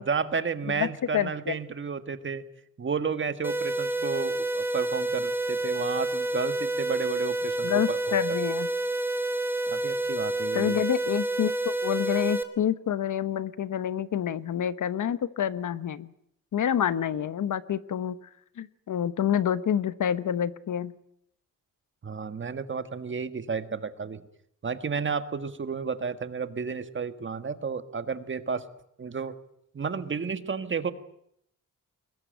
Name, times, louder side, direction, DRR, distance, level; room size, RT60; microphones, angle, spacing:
voice 1, 0.0-2.4 2.8-8.0 8.3-8.4 9.7-10.8 22.0-24.2 24.6-28.7 29.0-29.3 29.7-30.9, right 5 dB, 40° right, 10 dB, 1.6 m, -32 dB
voice 2, 1.1-1.5 7.6-8.7 10.5-16.1 16.5-18.2 18.6-20.9, left 9 dB, 70° left, 14 dB, 1.1 m, -28 dB
sound 1, 3.4-12.4, right 2 dB, 5° right, 2.2 m, -29 dB
22.5 x 21.0 x 9.1 m, 0.72 s
wide cardioid pair, 145°, 32 cm